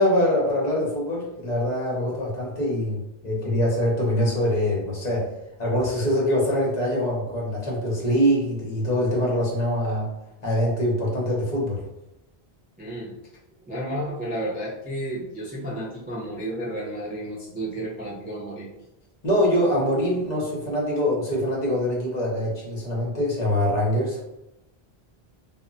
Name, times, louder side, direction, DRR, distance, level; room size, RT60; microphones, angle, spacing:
voice 1, 0.0-5.3 5.6-10.1 10.4-11.8 19.2-24.2, equal, 45° left, -4 dB, 0.8 m, -24 dB
voice 2, 12.8-13.1 13.7-18.7, right 1 dB, 15° right, -7 dB, 0.4 m, -32 dB
2.1 x 2.1 x 3.8 m, 0.91 s
omnidirectional pair, 1.1 m